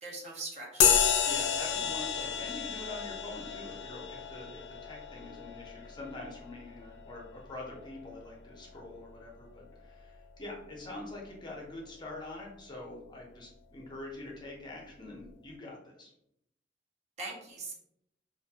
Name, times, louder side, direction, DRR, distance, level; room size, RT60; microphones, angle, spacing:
voice 1, 0.0-1.0 17.2-17.7, right 3 dB, 40° right, -1 dB, 0.5 m, -41 dB
sound 1, 0.8-8.7, left 7 dB, 80° left, 0.4 m, -31 dB
voice 2, 1.2-16.1, left 2 dB, 25° left, -2 dB, 0.6 m, -45 dB
2.3 x 2.2 x 2.7 m, 0.75 s
head